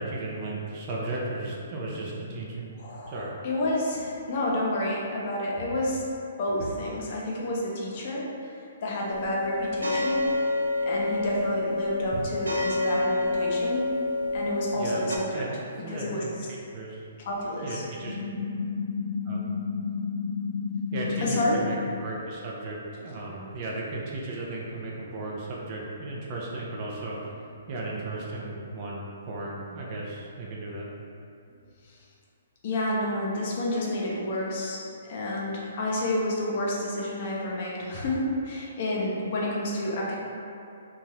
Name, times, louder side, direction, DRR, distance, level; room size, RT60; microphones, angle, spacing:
voice 1, 0.0-2.7 3.1-3.3 4.0-4.1 14.7-15.5 15.8-16.3 16.7-17.1 17.6-18.2 19.3-19.4 20.9-27.4 27.7-30.9, right 2 dB, 40° right, -4 dB, 0.5 m, -35 dB
voice 2, 2.8-6.0 6.4-8.5 8.8-10.3 10.9-13.8 14.3-15.5 15.9-16.5 17.2-17.8 21.2-21.6 31.9-32.0 32.6-34.8 35.1-40.2, left 1 dB, 50° left, -4 dB, 0.6 m, -30 dB
sound 1, 9.1-15.2, left 2 dB, 90° right, 0.3 m, -28 dB
sound 2, 18.0-21.9, left 5 dB, 5° right, 1.2 m, -31 dB
2.6 x 2.3 x 3.2 m, 2.5 s
hypercardioid pair, 135°, 0 cm